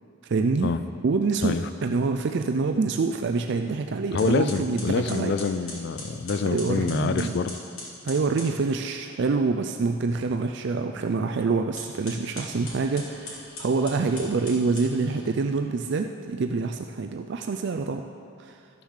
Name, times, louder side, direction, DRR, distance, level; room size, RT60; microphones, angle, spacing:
voice 1, 0.2-0.7 1.0-5.3 6.5-7.3 8.0-18.0 18.4-18.6, right 4 dB, 55° right, 5 dB, 0.4 m, -26 dB
voice 2, 4.1-7.6, left 4 dB, 50° left, 11 dB, 0.3 m, -26 dB
sound 1, 4.2-8.6 11.6-15.3, left 2 dB, 70° left, 3.1 m, -41 dB
13.0 x 6.8 x 6.4 m, 2.5 s
head